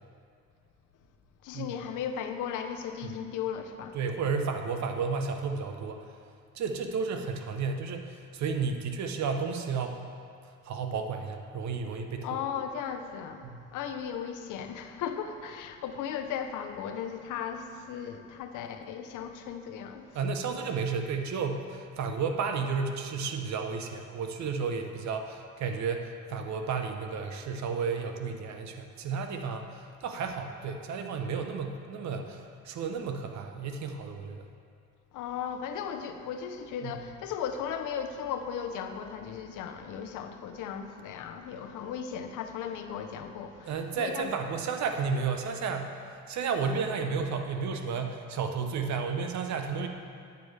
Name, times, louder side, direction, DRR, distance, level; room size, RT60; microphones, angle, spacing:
voice 1, 1.4-4.0 12.2-13.4 13.7-20.1 35.1-44.3, left 8 dB, 85° left, 6 dB, 0.6 m, -36 dB
voice 2, 3.9-6.1 6.5-10.0 10.6-12.4 13.6-13.7 20.1-34.5 36.8-36.9 43.7-46.0 46.3-49.9, right 5 dB, 65° right, 5 dB, 0.8 m, -32 dB
9.7 x 6.9 x 3.2 m, 2.3 s
cardioid pair, 90°, 30 cm